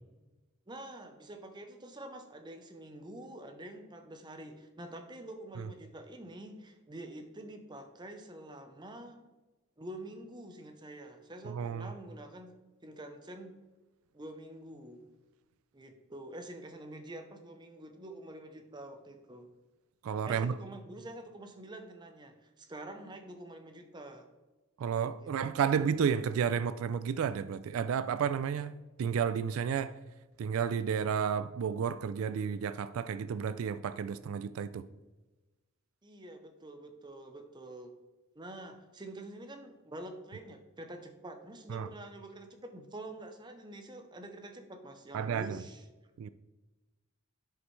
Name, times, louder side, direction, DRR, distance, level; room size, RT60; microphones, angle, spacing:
voice 1, 0.7-9.2 9.8-12.6 12.8-13.5 14.1-15.1 15.7-19.5 20.2-24.3 25.2-25.3 25.6-25.7 36.0-37.9 38.4-45.8, right 1 dB, 20° right, 0.7 m, -47 dB
voice 2, 11.4-11.9 20.0-20.6 24.8-28.7 29.0-30.0 30.4-34.9 41.7-41.9 45.1-45.6 46.2-46.3, right 7 dB, 80° right, 0.3 m, -32 dB
11.0 x 5.2 x 3.2 m
head